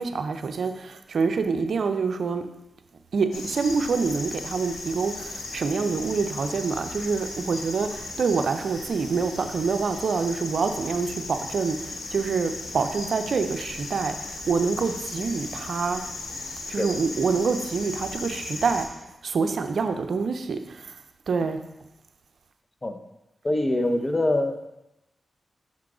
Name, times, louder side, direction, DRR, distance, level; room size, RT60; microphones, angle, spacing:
voice 1, 0.0-2.5 3.1-16.0 16.7-18.8 19.2-21.0 21.3-21.6, right 5 dB, 75° right, 8 dB, 0.4 m, -26 dB
sound 1, 3.3-18.9, left 3 dB, 90° left, 0.9 m, -36 dB
voice 2, 23.4-24.7, left 1 dB, 30° left, 6 dB, 0.7 m, -24 dB
6.0 x 3.7 x 4.8 m, 0.93 s
cardioid pair, 50°, 0 cm